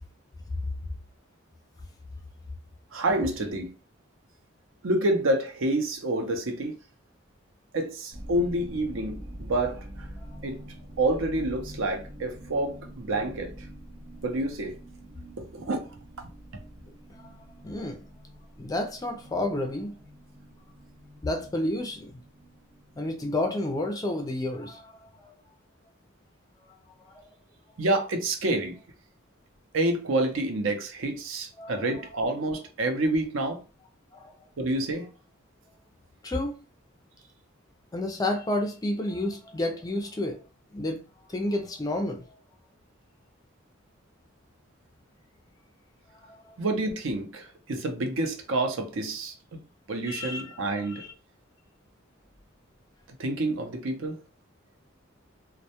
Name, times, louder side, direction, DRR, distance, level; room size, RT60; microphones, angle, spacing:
voice 1, 2.9-3.7 4.8-6.7 7.7-10.1 10.4-10.6 11.0-13.7 14.2-14.7 15.5-15.8 27.8-28.8 29.7-33.6 34.6-35.1 46.6-49.6 49.9-51.0 53.2-54.1, right 2 dB, 70° right, 0.6 m, -28 dB
sound 1, 8.1-23.3, equal, 35° right, 0.7 m, -45 dB
voice 2, 17.2-18.0 18.6-20.0 21.2-22.1 23.0-25.3 26.7-27.3 31.6-32.0 34.1-34.3 36.2-36.6 37.9-40.4 40.7-41.0 41.3-42.4 46.1-46.6 50.1-51.1, left 1 dB, 20° left, 0.4 m, -31 dB
2.2 x 2.1 x 2.8 m
head